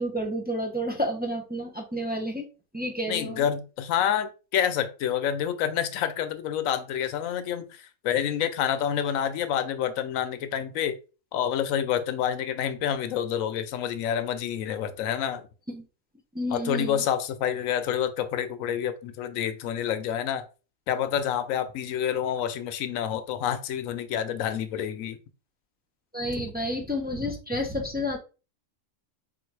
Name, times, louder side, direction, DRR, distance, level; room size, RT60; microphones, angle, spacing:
voice 1, 0.0-2.5 2.7-3.4 15.7-15.8 16.3-17.0 26.1-28.2, equal, 15° right, 1 dB, 0.3 m, -30 dB
voice 2, 3.1-10.9 11.3-15.5 16.5-20.5 20.9-25.2, left 9 dB, 90° left, 10 dB, 1.0 m, -28 dB
3.8 x 2.4 x 4.6 m, 0.33 s
omnidirectional pair, 1.4 m